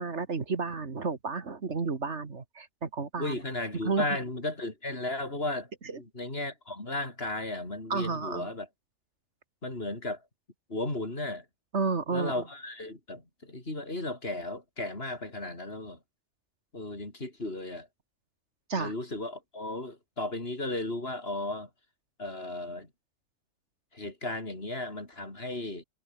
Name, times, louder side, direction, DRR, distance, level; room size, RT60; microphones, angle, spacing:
voice 1, 0.0-3.4 3.8-4.0 5.9-6.0 7.9-8.5 11.7-12.4 18.7-18.9, right 4 dB, 65° right, 2.3 m, -31 dB
voice 2, 3.2-8.7 9.6-10.2 10.7-11.4 12.1-16.0 16.7-17.9 18.8-21.7 22.2-22.9 23.9-25.8, left 2 dB, 55° left, 5.0 m, -35 dB
omnidirectional pair, 1.3 m